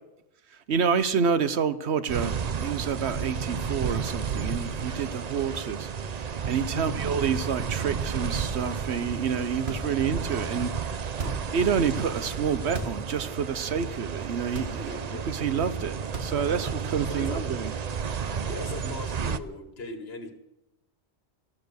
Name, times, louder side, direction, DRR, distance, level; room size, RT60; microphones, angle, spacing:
voice 1, 0.7-11.2 11.5-17.7, right 6 dB, 85° right, 1.2 m, -28 dB
sound 1, 2.1-19.4, right 6 dB, 45° right, 0.7 m, -32 dB
voice 2, 6.7-7.1 11.2-11.4 14.9-15.3 17.0-17.5 18.5-20.3, left 2 dB, 70° left, 1.7 m, -39 dB
sound 2, 9.7-10.2 11.1-11.7 12.6-13.1 13.5-13.6 14.4-15.1 16.0-16.7, right 1 dB, 70° right, 2.1 m, -37 dB
14.0 x 13.5 x 6.4 m
omnidirectional pair, 1.1 m